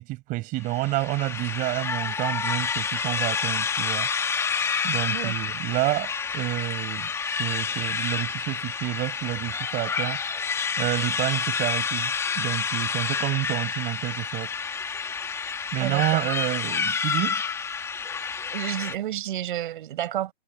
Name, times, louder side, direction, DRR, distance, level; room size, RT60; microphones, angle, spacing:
voice 1, 0.0-4.1 4.8-10.2 10.8-14.5 15.7-17.4, right 20 dB, 25° right, 5.6 m, -29 dB
sound 1, 0.6-18.9, left 6 dB, 10° left, 2.0 m, -29 dB
voice 2, 15.8-16.3 18.5-20.3, right 12 dB, 45° right, 7.2 m, -30 dB
hypercardioid pair, 145°, 34 cm